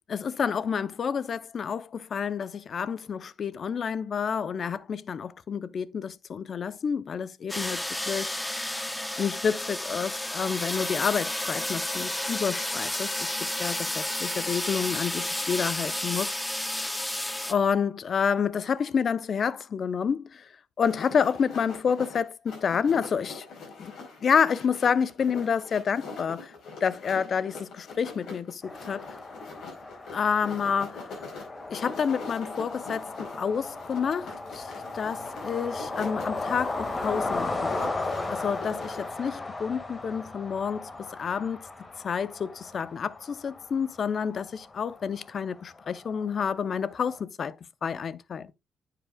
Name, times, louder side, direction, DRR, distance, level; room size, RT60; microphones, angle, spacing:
voice 1, 0.1-8.4 9.2-16.6 17.5-20.5 20.8-23.5 23.8-26.5 26.8-29.2 30.1-31.0 31.7-37.9 38.3-41.7 42.0-47.5 47.8-48.5, left 6 dB, 50° left, 0.5 m, -29 dB
sound 1, 7.5-17.5, left 1 dB, 10° left, 0.6 m, -31 dB
sound 2, 20.8-39.1, left 4 dB, 70° left, 4.7 m, -44 dB
sound 3, 28.6-47.2, left 2 dB, 25° left, 1.7 m, -36 dB
9.7 x 7.6 x 2.2 m
cardioid pair, 90°, 0 cm